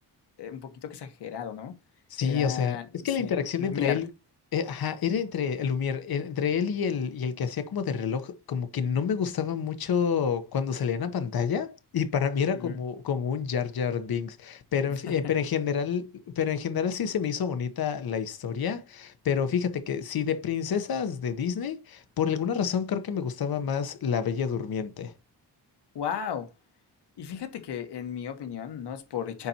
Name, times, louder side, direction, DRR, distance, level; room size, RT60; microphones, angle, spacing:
voice 1, 0.4-1.7 2.2-2.8 3.2-3.3 3.6-4.0 12.5-12.8 25.9-26.5 27.2-29.5, left 8 dB, 80° left, 1.4 m, -34 dB
voice 2, 2.1-4.1 4.5-16.1 16.3-25.1, left 7 dB, 60° left, 1.1 m, -28 dB
9.6 x 4.2 x 2.9 m
wide cardioid pair, 125°, 40 cm